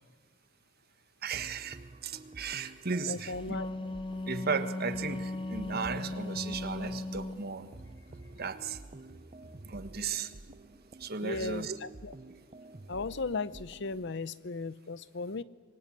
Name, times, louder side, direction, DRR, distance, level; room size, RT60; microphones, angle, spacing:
voice 1, 1.2-1.8 2.0-3.6 4.3-7.7 8.4-8.8 9.6-10.6 11.0-11.8, right 5 dB, 55° right, 10 dB, 1.5 m, -35 dB
sound 1, 1.3-14.1, right 2 dB, 35° right, 0.8 m, -50 dB
voice 2, 3.1-3.9 11.2-12.1 12.9-15.4, left 3 dB, 65° left, 17 dB, 0.8 m, -36 dB
Wind instrument woodwind instrument, 3.2-7.4, left 2 dB, 25° left, 1.1 m, -37 dB
sound 2, 3.8-4.5 5.1-7.5 7.8-10.1, right 1 dB, 80° left, 5.3 m, -57 dB
26.5 x 22.5 x 9.1 m, 1.4 s
head